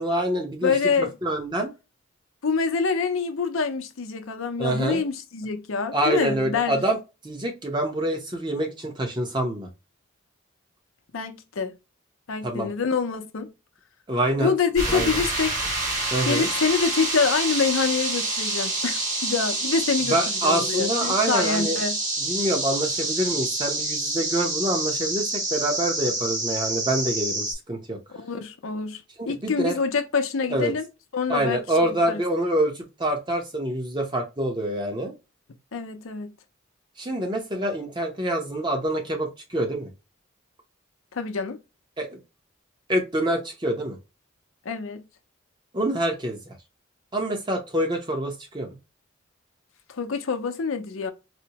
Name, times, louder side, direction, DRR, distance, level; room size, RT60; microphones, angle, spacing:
voice 1, 0.0-1.7 4.6-5.1 5.9-7.0 7.2-9.7 12.4-12.7 14.1-14.5 14.9-15.2 16.1-16.5 20.1-21.8 22.2-28.0 29.2-29.8 30.5-30.7 31.3-35.1 37.0-39.9 42.0-42.2 42.9-44.0 45.7-46.5 47.1-48.7, right 1 dB, 20° right, 0.7 m, -26 dB
voice 2, 0.6-1.1 2.4-6.8 11.1-11.7 12.3-13.5 14.4-15.6 16.3-22.0 28.1-30.9 31.1-32.2 35.7-36.3 41.1-41.6 44.6-45.1 49.9-51.1, left 5 dB, 80° left, 0.6 m, -26 dB
sound 1, 14.7-27.5, right 2 dB, 40° right, 1.5 m, -27 dB
4.2 x 2.1 x 2.8 m
head